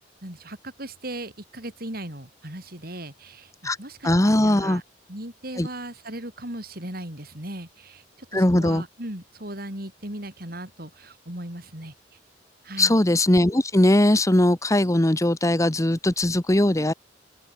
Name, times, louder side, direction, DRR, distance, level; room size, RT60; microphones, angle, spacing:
voice 1, 0.2-4.8 5.1-8.0 8.3-11.9 12.6-13.0, right 1 dB, 55° right, 6.5 m, -37 dB
voice 2, 4.0-4.8 5.6-5.7 8.3-8.8 12.8-16.9, left 1 dB, 15° left, 1.0 m, -20 dB
open air
head